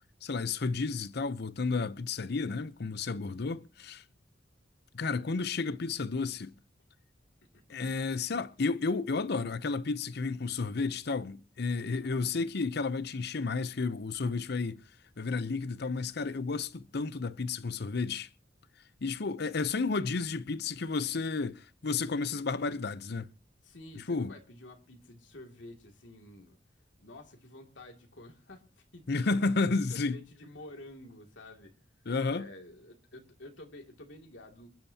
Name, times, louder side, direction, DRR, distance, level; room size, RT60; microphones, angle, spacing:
voice 1, 0.2-4.0 4.9-6.5 7.7-14.8 15.2-18.3 19.0-23.3 24.1-24.3 29.1-30.2 32.1-32.5, left 4 dB, 60° left, 0.7 m, -32 dB
voice 2, 3.2-3.6 7.5-7.8 12.0-12.4 23.6-26.6 27.0-29.4 29.9-31.8 32.3-34.7, left 1 dB, 85° left, 2.5 m, -50 dB
27.5 x 10.5 x 2.8 m
head